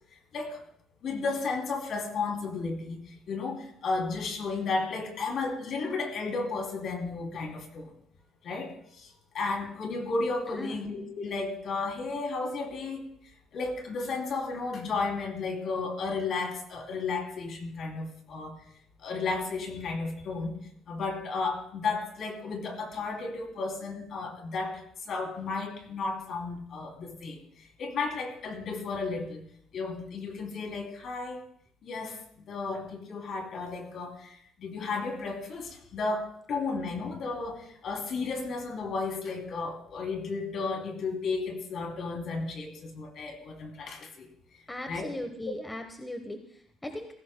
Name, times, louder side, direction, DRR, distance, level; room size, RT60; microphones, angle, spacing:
voice 1, 1.0-7.9 8.4-13.0 13.5-18.5 19.0-20.5 20.9-29.4 29.7-31.4 31.8-44.3 44.9-45.1, left 4 dB, 50° left, 2 dB, 3.0 m, -33 dB
voice 2, 44.7-47.1, left 1 dB, 10° left, 5 dB, 1.0 m, -38 dB
19.5 x 16.5 x 2.2 m, 0.65 s
cardioid pair, 140°, 0 cm